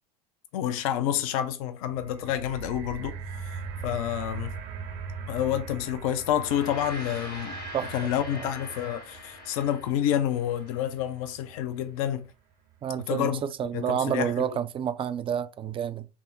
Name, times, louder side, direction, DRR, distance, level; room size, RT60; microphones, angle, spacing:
voice 1, 0.5-4.6 5.3-7.6 7.9-12.3 13.1-13.4 13.7-14.5, left 10 dB, 60° left, 0.6 m, -29 dB
sound 1, 1.9-12.1 12.8-12.9, right 5 dB, 50° right, 0.9 m, -41 dB
Gong, 6.2-10.8, left 1 dB, 80° left, 2.2 m, -42 dB
voice 2, 7.7-8.5 12.8-16.1, right 9 dB, 25° right, 0.5 m, -30 dB
6.0 x 2.0 x 3.6 m
hypercardioid pair, 80°, 20 cm